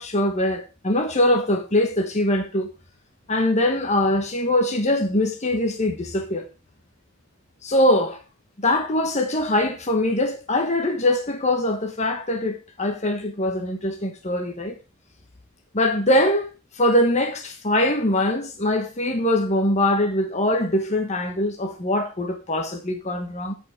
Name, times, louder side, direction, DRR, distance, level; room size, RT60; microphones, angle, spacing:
voice 1, 0.0-2.7 3.3-6.5 7.6-8.2 8.6-14.8 15.7-16.5 16.7-23.5, left 1 dB, 35° left, 1.3 m, -22 dB
14.5 x 5.6 x 3.6 m
head